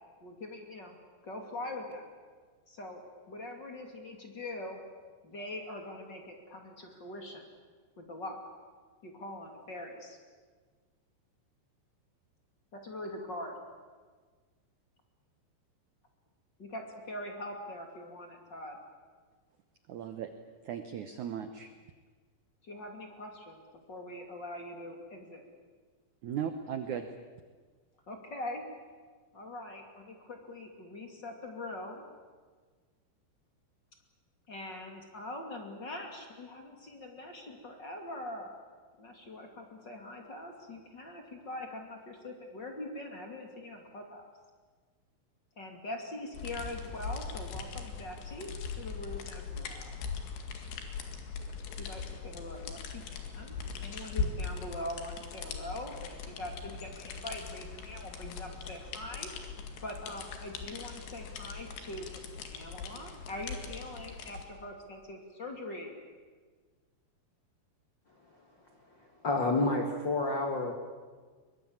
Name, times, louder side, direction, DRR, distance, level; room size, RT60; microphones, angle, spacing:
voice 1, 0.2-1.0 1.2-2.1 2.7-3.0 3.3-4.8 5.2-7.4 8.0-8.4 9.0-10.2 12.7-13.5 16.6-18.8 22.6-23.6 23.9-25.4 28.1-28.7 29.3-32.0 34.5-38.5 39.0-44.2 45.6-50.0 51.8-53.5 53.8-59.3 59.8-66.0, left 1 dB, 30° left, 3 dB, 2.6 m, -43 dB
voice 2, 19.9-20.3 20.6-21.7 26.2-27.1, right 8 dB, 70° right, 8 dB, 1.8 m, -37 dB
sound 1, 46.3-64.4, left 5 dB, 75° left, 4.2 m, -40 dB
voice 3, 69.2-70.7, left 2 dB, 45° left, 3 dB, 1.4 m, -29 dB
23.0 x 22.5 x 8.9 m, 1.5 s
omnidirectional pair, 5.0 m